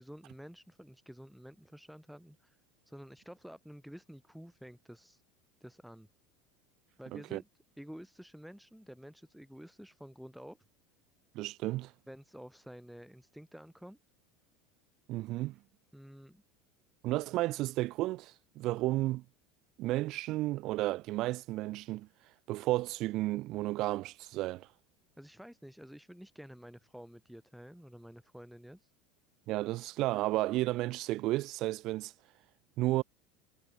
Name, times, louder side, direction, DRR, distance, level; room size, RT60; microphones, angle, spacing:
voice 1, 0.0-2.6 2.8-5.2 5.6-6.1 7.0-7.5 7.8-10.6 12.1-14.0 15.9-16.4 25.2-28.9, equal, ahead, 4.8 m, -50 dB
voice 2, 11.3-11.9 15.1-15.6 17.0-19.2 19.8-22.1 22.5-24.7 29.5-32.1 32.8-33.0, right 17 dB, 50° right, 1.7 m, -32 dB
supercardioid pair, 125°, 0 cm